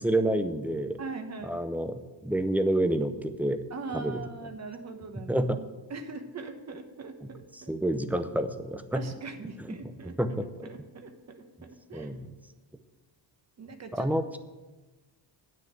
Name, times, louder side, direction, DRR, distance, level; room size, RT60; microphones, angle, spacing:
voice 1, 0.0-1.0 1.4-3.6 3.9-4.2 5.3-5.6 7.5-9.0 9.8-10.7 11.9-12.3 13.9-14.4, right 1 dB, 5° right, 9 dB, 0.6 m, -29 dB
voice 2, 1.0-1.6 3.7-5.5 5.9-7.7 8.9-10.2 10.6-12.1 13.6-14.1, right 4 dB, 35° right, 7 dB, 1.2 m, -41 dB
10.0 x 6.4 x 8.7 m, 1.2 s
cardioid pair, 140°, 44 cm